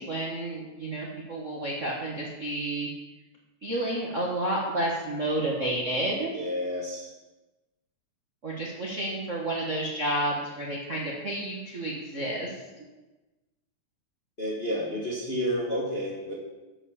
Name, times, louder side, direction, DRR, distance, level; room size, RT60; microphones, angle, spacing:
voice 1, 0.0-2.9 3.6-6.3 8.4-12.5, right 1 dB, 40° right, -4 dB, 1.2 m, -30 dB
voice 2, 6.3-7.1 14.4-16.3, equal, 25° left, -4 dB, 1.3 m, -30 dB
11.5 x 5.7 x 7.1 m, 1.1 s
omnidirectional pair, 3.4 m